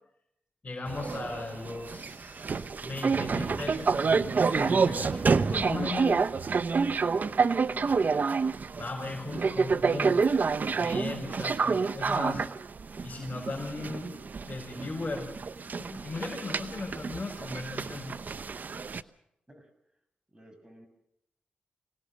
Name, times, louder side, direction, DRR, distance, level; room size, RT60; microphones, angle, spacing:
voice 1, 0.6-6.2 8.8-10.2 10.8-12.4 13.0-14.1 14.4-15.3 15.7-18.2, left 3 dB, 40° left, -3 dB, 6.0 m, -37 dB
sound 1, 0.9-19.0, right 5 dB, 55° right, 0.8 m, -28 dB
voice 2, 20.3-20.9, equal, 25° right, 7 dB, 6.8 m, -54 dB
24.5 x 18.5 x 6.5 m, 0.79 s
cardioid pair, 45°, 3 cm